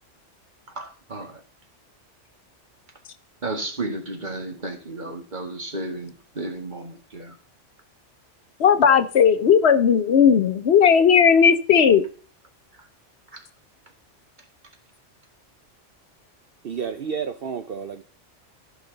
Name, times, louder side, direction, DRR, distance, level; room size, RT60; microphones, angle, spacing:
voice 1, 0.8-1.3 3.4-7.3, right 2 dB, 40° right, 1.9 m, -33 dB
voice 2, 8.6-12.1, left 7 dB, 65° left, 1.0 m, -16 dB
voice 3, 16.6-18.0, right 6 dB, 55° right, 0.8 m, -30 dB
14.0 x 6.1 x 3.9 m
omnidirectional pair, 1.2 m